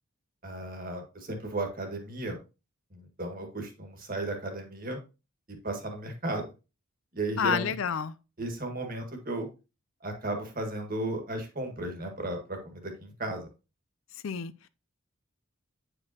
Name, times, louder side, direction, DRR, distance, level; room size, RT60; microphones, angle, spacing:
voice 1, 0.4-2.4 2.9-5.0 5.5-6.4 7.1-7.7 8.4-9.5 10.0-13.5, right 2 dB, 40° right, 1.6 m, -35 dB
voice 2, 7.4-8.2 14.2-14.7, left 7 dB, 65° left, 0.4 m, -29 dB
8.5 x 4.9 x 2.8 m
head